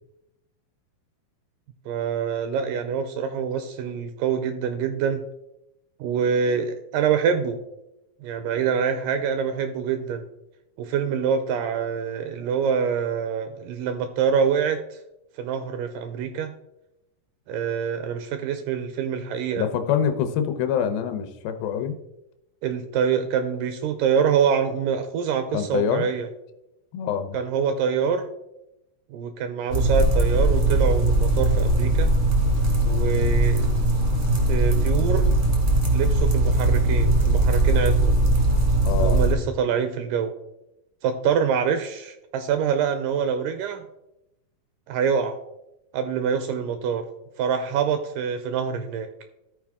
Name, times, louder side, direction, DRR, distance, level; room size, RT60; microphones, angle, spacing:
voice 1, 1.9-5.2 6.0-7.6 8.2-10.2 10.8-15.0 15.4-16.5 17.5-19.7 22.6-26.3 27.3-28.3 29.1-32.1 32.9-33.7 34.5-35.3 35.9-38.1 39.0-40.3 41.0-43.8 44.9-45.4 45.9-47.1 47.4-49.1, right 7 dB, 80° right, 9 dB, 2.0 m, -25 dB
voice 2, 19.6-22.0 25.5-26.1 26.9-27.4 38.8-39.3, left 8 dB, 80° left, 8 dB, 2.4 m, -25 dB
sound 1, 29.7-39.3, right 2 dB, 45° right, 0.9 m, -20 dB
14.0 x 4.7 x 3.6 m, 0.87 s
omnidirectional pair, 4.2 m